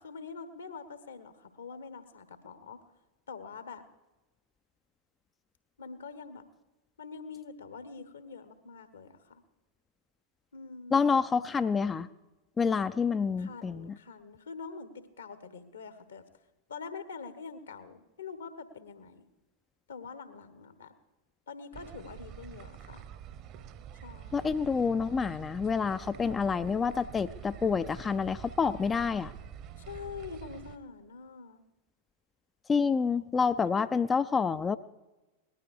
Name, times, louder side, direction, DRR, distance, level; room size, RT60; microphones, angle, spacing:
voice 1, 0.0-2.8 3.3-3.8 5.8-6.4 7.0-9.4 10.5-11.1 13.4-16.2 16.7-19.2 19.9-20.9 21.5-23.0 24.0-24.5 29.8-31.6 33.6-33.7, left 5 dB, 70° left, 12 dB, 1.3 m, -45 dB
voice 2, 10.9-12.1 12.6-13.9 24.3-29.3 32.7-34.8, left 5 dB, 20° left, 12 dB, 0.4 m, -28 dB
sound 1, 21.7-30.8, right 9 dB, 40° right, 0.9 m, -46 dB
19.0 x 12.5 x 4.8 m, 1.1 s
figure-of-eight pair, 90°, 0 cm